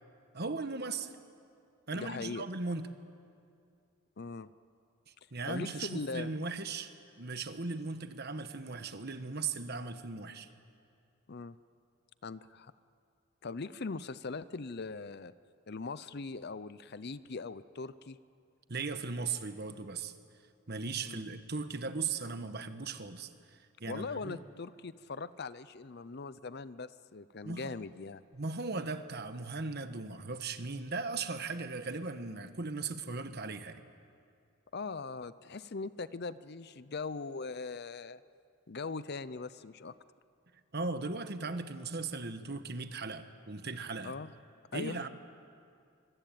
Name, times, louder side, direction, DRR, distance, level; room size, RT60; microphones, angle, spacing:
voice 1, 0.3-1.1 1.9-2.9 5.3-10.5 18.7-20.1 20.7-24.4 27.4-27.7 28.3-33.8 40.7-44.1 44.7-45.1, right 3 dB, 45° right, 9 dB, 1.3 m, -38 dB
voice 2, 1.9-2.4 4.2-4.5 5.5-6.3 11.3-11.6 12.2-12.7 13.4-15.3 15.7-18.2 21.0-21.2 23.9-28.2 34.7-38.2 38.7-40.0 44.0-44.3 44.7-45.1, left 4 dB, 45° left, 16 dB, 0.6 m, -40 dB
24.5 x 23.5 x 9.1 m, 2.4 s
head